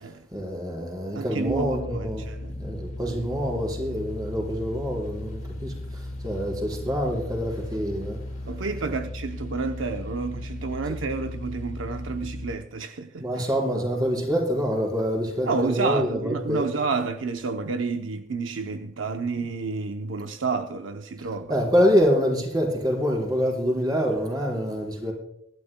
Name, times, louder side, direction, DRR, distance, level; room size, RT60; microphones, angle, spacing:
voice 1, 0.3-2.2 2.6-8.2 13.2-16.7 21.5-25.1, equal, 20° right, 4.5 m, -26 dB
voice 2, 1.1-2.5 8.4-13.3 15.5-21.5, right 4 dB, 80° right, 0.7 m, -30 dB
sound 1, 1.5-12.6, left 1 dB, 40° left, 1.2 m, -36 dB
24.0 x 11.5 x 2.2 m
head